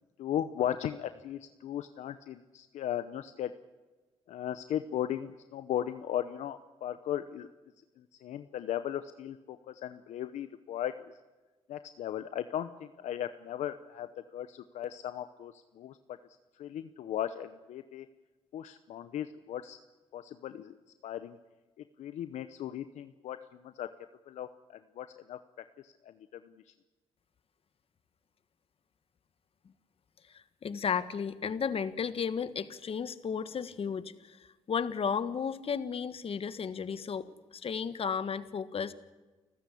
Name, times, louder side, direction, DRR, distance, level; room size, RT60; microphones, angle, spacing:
voice 1, 0.2-3.5 4.3-7.5 8.2-10.9 11.7-16.0 16.6-18.1 18.5-19.8 20.1-20.7 21.0-21.4 22.0-23.9 24.3-25.4 25.8-26.1, left 10 dB, 80° left, 11 dB, 0.8 m, -37 dB
voice 2, 30.3-34.4 34.7-38.9, left 6 dB, 55° left, 13 dB, 1.5 m, -34 dB
29.5 x 14.0 x 8.5 m, 1.2 s
cardioid pair, 70°, 12 cm